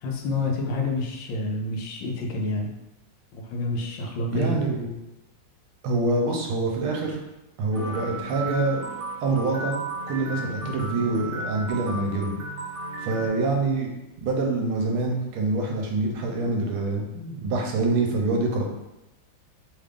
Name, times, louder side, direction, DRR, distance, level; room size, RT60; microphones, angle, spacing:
voice 1, 0.0-2.7 3.3-4.5, left 2 dB, 75° left, 1 dB, 1.2 m, -28 dB
voice 2, 4.3-4.9 5.8-7.2 7.6-8.8 9.2-9.8 10.1-12.3 13.0-13.9 14.2-18.6, right 3 dB, 85° right, 1 dB, 1.5 m, -25 dB
sound 1, 7.7-13.3, right 1 dB, 60° right, 0.7 m, -34 dB
3.5 x 2.4 x 3.3 m, 0.95 s
omnidirectional pair, 2.3 m